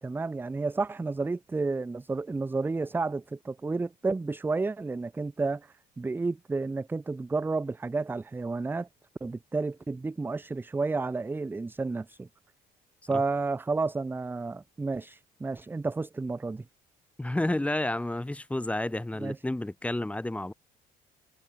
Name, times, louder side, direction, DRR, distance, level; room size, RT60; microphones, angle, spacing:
voice 1, 0.0-8.9 9.2-12.3 13.1-16.6 19.2-19.4, right 3 dB, 10° right, 0.5 m, -31 dB
voice 2, 17.2-20.5, left 1 dB, 10° left, 2.3 m, -30 dB
cardioid pair, 110°, 17 cm